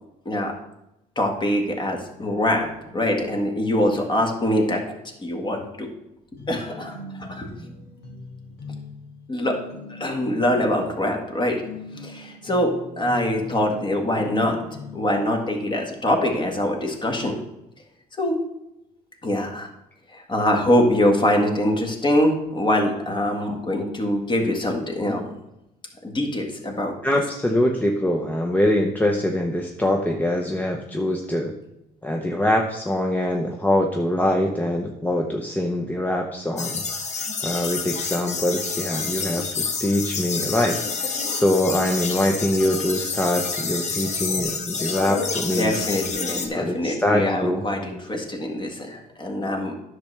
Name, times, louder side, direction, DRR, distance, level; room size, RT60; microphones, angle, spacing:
voice 1, 1.1-4.8 5.2-5.9 6.5-7.5 9.3-9.6 9.9-11.6 12.0-14.6 14.9-17.4 18.2-18.4 19.2-19.7 20.1-25.3 26.0-27.0 45.4-49.7, left 1 dB, 25° left, 2 dB, 1.7 m, -23 dB
sound 1, 6.4-15.2, left 3 dB, 75° left, 1.7 m, -40 dB
voice 2, 27.0-31.5 32.0-36.8 37.4-45.8 46.5-47.6, left 1 dB, 10° left, 1 dB, 0.7 m, -23 dB
sound 2, 36.6-46.5, left 5 dB, 40° left, 1.1 m, -28 dB
10.0 x 6.5 x 3.3 m, 0.89 s
cardioid pair, 110°, 17 cm